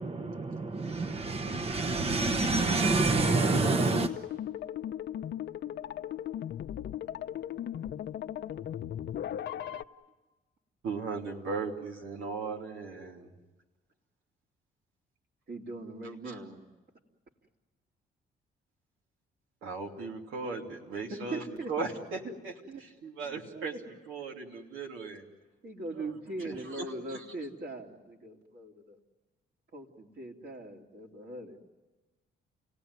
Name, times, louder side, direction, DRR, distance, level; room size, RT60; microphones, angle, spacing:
voice 1, 0.0-4.1, right 3 dB, 30° right, 9 dB, 1.0 m, -27 dB
sound 1, 3.2-9.8, left 10 dB, 60° left, 0.8 m, -37 dB
voice 2, 10.8-13.3 16.0-16.4 19.6-22.5 22.8-25.2 26.0-27.2, right 4 dB, 85° right, 1 dB, 3.0 m, -38 dB
voice 3, 15.5-16.7 21.1-21.7 22.7-22.8 23.2-23.8 24.5-24.7 25.6-29.0 29.7-31.6, right 2 dB, 55° right, 1 dB, 3.3 m, -41 dB
29.5 x 18.0 x 9.7 m, 1.2 s
cardioid pair, 90°, 20 cm